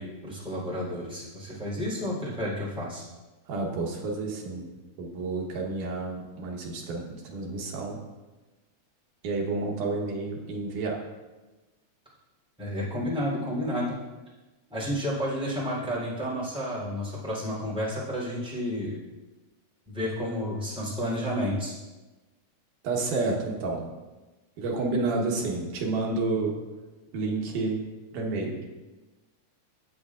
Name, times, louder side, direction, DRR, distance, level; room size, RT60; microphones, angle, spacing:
voice 1, 0.0-3.0 12.6-14.0 14.7-19.0 19.9-21.7, equal, ahead, -6 dB, 3.2 m, -31 dB
voice 2, 3.5-4.7 5.0-8.0 9.2-11.0 22.8-23.9 24.6-26.6 27.1-27.8 28.1-28.6, right 3 dB, 80° right, -1 dB, 2.8 m, -30 dB
14.0 x 8.9 x 2.5 m, 1.2 s
omnidirectional pair, 3.6 m